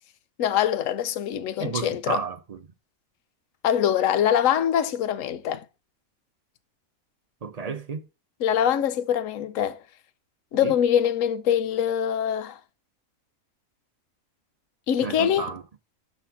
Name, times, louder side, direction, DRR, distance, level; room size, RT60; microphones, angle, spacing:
voice 1, 0.4-2.2 3.6-5.6 8.4-9.8 10.5-12.6 14.9-15.5, left 9 dB, 70° left, 1.0 m, -23 dB
voice 2, 1.6-2.6 7.4-8.0 10.6-10.7 15.0-15.6, right 5 dB, 45° right, 0.5 m, -32 dB
6.8 x 4.2 x 5.6 m
omnidirectional pair, 1.5 m